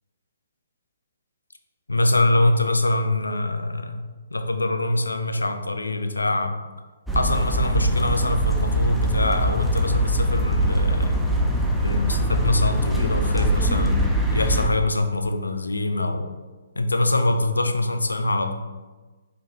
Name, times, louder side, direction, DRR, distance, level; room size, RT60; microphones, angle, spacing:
voice 1, 1.9-4.0 4.3-6.6 7.1-11.2 11.8-16.3 16.8-18.5, left 2 dB, 75° left, 6 dB, 0.4 m, -24 dB
sound 1, 7.1-14.7, right 1 dB, ahead, 0.4 m, -22 dB
5.1 x 2.2 x 2.9 m, 1.3 s
figure-of-eight pair, 130°, 0 cm